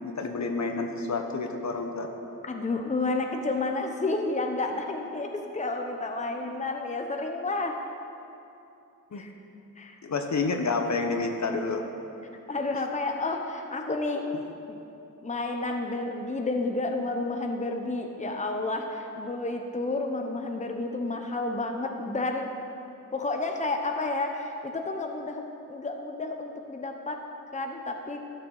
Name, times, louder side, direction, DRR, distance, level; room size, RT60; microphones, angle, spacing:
voice 1, 0.0-2.1 9.1-9.2 10.0-11.8, left 3 dB, 55° left, 4 dB, 1.2 m, -29 dB
voice 2, 2.5-7.8 9.1-9.3 9.8-10.0 12.5-14.3 14.7-14.8 15.2-22.5 23.1-27.2 27.5-28.2, left 2 dB, 20° left, 3 dB, 0.9 m, -31 dB
13.0 x 6.7 x 6.5 m, 2.7 s
cardioid pair, 75°, 33 cm